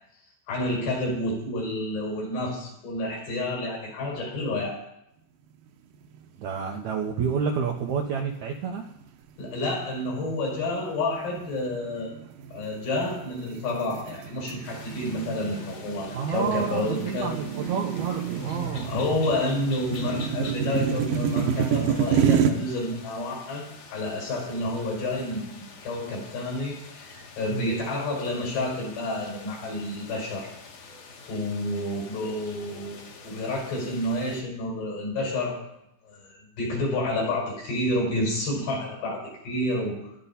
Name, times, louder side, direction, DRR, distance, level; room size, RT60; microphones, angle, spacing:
voice 1, 0.5-4.8 9.4-12.1 12.5-17.3 18.8-23.6 23.9-30.5 31.3-35.6 36.1-36.2 36.6-40.1, left 1 dB, 75° left, -2 dB, 7.0 m, -29 dB
sound 1, 6.1-6.6 6.9-7.0 7.7-8.2 8.8-9.0 9.6-22.5, right 8 dB, 75° right, 2.2 m, -29 dB
voice 2, 6.4-8.8 16.1-18.9 27.5-27.7, right 6 dB, 90° right, 2 dB, 1.6 m, -29 dB
sound 2, 14.6-34.4, left 4 dB, 55° left, 2.4 m, -46 dB
17.0 x 12.5 x 4.3 m, 0.81 s
omnidirectional pair, 4.9 m